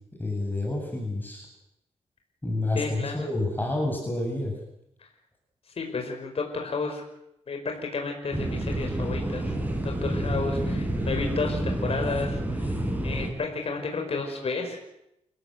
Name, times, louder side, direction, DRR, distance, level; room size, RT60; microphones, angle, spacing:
voice 1, 0.2-1.5 2.4-4.5 10.1-10.4, left 2 dB, 15° left, 1 dB, 7.8 m, -29 dB
voice 2, 2.7-3.3 5.8-7.0 7.5-7.6 7.9-9.5 9.8-14.8, left 4 dB, 55° left, 3 dB, 5.0 m, -32 dB
sound 1, 8.3-13.3, right 1 dB, 15° right, 6.2 m, -29 dB
29.5 x 16.0 x 8.0 m, 0.82 s
cardioid pair, 85°, 12 cm